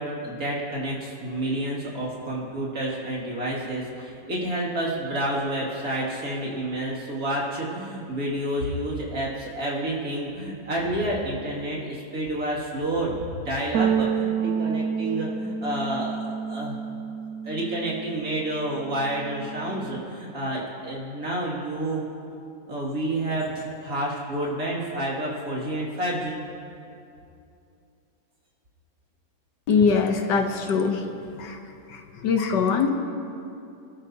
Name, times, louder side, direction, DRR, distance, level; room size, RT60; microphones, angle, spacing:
voice 1, 0.0-16.8 17.4-22.0 22.7-26.4, right 1 dB, 50° right, -5 dB, 2.9 m, -29 dB
sound 1, 13.7-18.3 18.6-20.0, right 6 dB, 80° right, 0.8 m, -29 dB
voice 2, 29.7-31.6 31.9-32.9, left 5 dB, 70° left, 4 dB, 1.5 m, -23 dB
25.5 x 12.5 x 2.8 m, 2.6 s
omnidirectional pair, 2.0 m